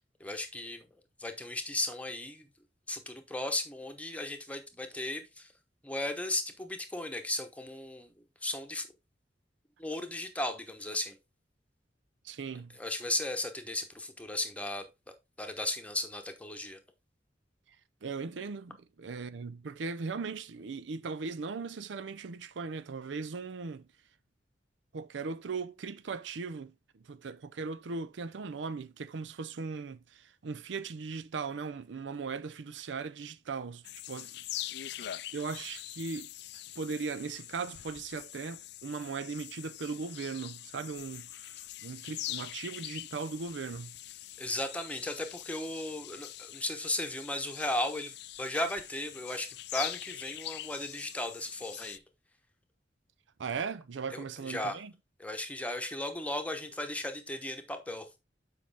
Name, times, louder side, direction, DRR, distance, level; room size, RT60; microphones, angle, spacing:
voice 1, 0.2-0.8 1.2-2.5 2.9-5.5 5.8-8.1 8.4-8.9 9.8-11.2 12.8-14.9 15.4-16.8 44.4-52.0 54.1-54.8 55.2-58.1, left 1 dB, 10° left, 1.0 m, -36 dB
voice 2, 12.2-12.8 18.0-23.9 24.9-26.7 27.0-34.7 35.0-36.3 36.8-44.0 53.4-54.9, right 4 dB, 85° right, 0.5 m, -38 dB
sound 1, 33.8-52.0, left 14 dB, 65° left, 0.4 m, -44 dB
7.7 x 5.2 x 3.4 m
head